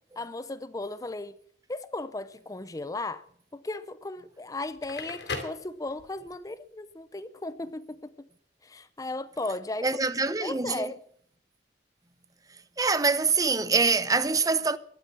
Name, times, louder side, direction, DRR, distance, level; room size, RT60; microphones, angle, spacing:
voice 1, 0.2-1.4 1.7-3.2 3.5-8.3 8.6-10.0 10.4-11.0, left 2 dB, 20° left, 0.5 m, -36 dB
Crackle, 4.6-6.3, left 3 dB, 80° left, 3.2 m, -38 dB
voice 2, 9.8-10.9 12.8-14.8, right 4 dB, 20° right, 0.7 m, -24 dB
13.5 x 11.5 x 7.4 m
head